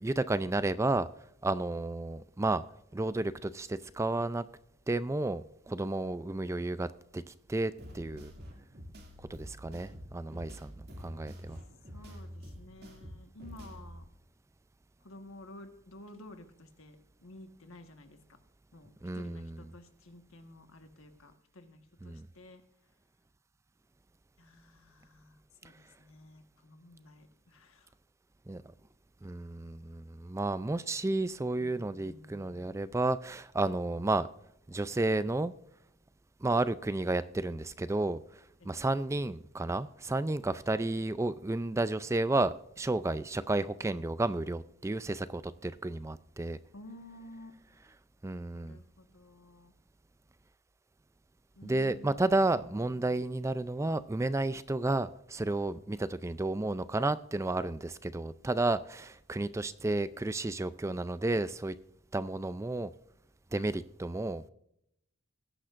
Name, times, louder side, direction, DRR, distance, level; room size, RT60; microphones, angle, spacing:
voice 1, 0.0-1.1 1.4-2.6 2.9-4.4 4.9-5.4 5.7-8.3 9.3-10.7 11.0-11.6 19.0-19.5 22.0-22.3 28.5-28.6 29.2-34.3 34.7-35.5 36.4-46.6 48.2-48.8 51.6-61.7 62.1-62.9 63.5-64.4, right 2 dB, 15° right, 14 dB, 0.3 m, -32 dB
sound 1, 7.8-14.0, equal, 50° right, 2.4 m, -47 dB
voice 2, 11.8-14.1 15.0-18.4 18.7-22.6 24.4-27.9 31.6-32.7 38.6-38.7 46.7-47.6 48.5-49.7 51.6-53.3, left 1 dB, 70° left, 7 dB, 1.5 m, -53 dB
20.0 x 10.0 x 2.5 m, 0.75 s
head